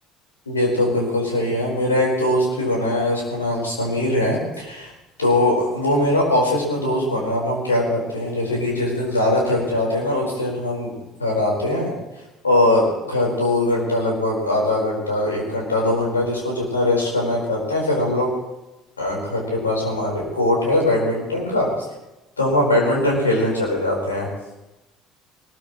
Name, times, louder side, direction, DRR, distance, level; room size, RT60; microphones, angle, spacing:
voice 1, 0.5-4.9 5.2-11.9 12.4-18.3 19.0-21.7 22.4-24.3, left 1 dB, 85° left, -2 dB, 4.6 m, -21 dB
20.5 x 20.0 x 3.2 m, 0.99 s
figure-of-eight pair, 60°, 0 cm